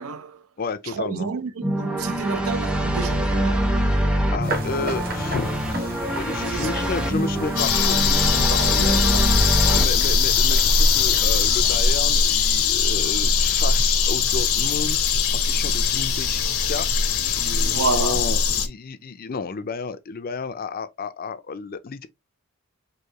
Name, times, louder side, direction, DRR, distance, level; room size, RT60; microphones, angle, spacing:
voice 1, 0.0-0.4 0.9-3.8 6.4-6.7 7.0-7.1 8.6-9.3 17.7-18.2, right 5 dB, 70° right, 0.6 m, -30 dB
voice 2, 0.6-1.3 4.3-9.0 9.6-15.0 15.3-22.1, left 4 dB, 40° left, 0.5 m, -32 dB
sound 1, 1.6-9.9, equal, 5° right, 0.6 m, -24 dB
sound 2, 4.4-12.4, right 1 dB, 45° right, 1.2 m, -34 dB
sound 3, 7.6-18.7, left 5 dB, 85° left, 0.8 m, -21 dB
4.6 x 2.7 x 2.8 m
head